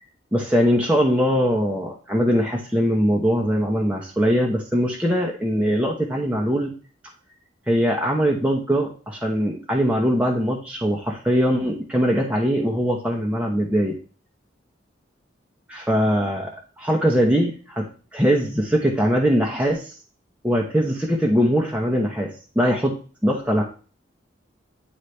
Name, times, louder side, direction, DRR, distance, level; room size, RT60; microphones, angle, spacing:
voice 1, 0.3-6.7 7.7-14.0 15.7-16.5 16.8-19.8 20.4-22.9 23.2-23.6, equal, 5° right, -2 dB, 0.9 m, -21 dB
9.7 x 4.1 x 3.2 m, 0.37 s
head